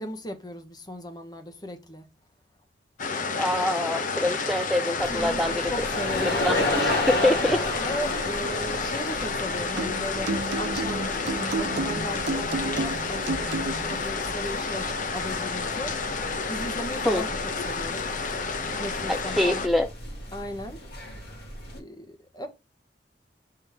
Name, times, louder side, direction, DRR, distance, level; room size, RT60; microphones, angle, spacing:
voice 1, 0.0-2.0 5.1-6.4 7.8-16.0 16.5-17.4 17.6-18.1 18.8-19.7 20.3-20.8 21.8-22.5, left 1 dB, 25° left, 1.0 m, -36 dB
sound 1, 3.0-19.7, left 4 dB, 45° left, 0.7 m, -30 dB
voice 2, 3.4-5.5 6.2-7.6 17.1-17.2 19.1-19.9, left 1 dB, ahead, 0.5 m, -25 dB
sound 2, 5.0-21.8, left 1 dB, 65° left, 2.1 m, -34 dB
sound 3, 9.8-14.0, right 2 dB, 80° right, 0.7 m, -31 dB
7.1 x 3.8 x 3.5 m
head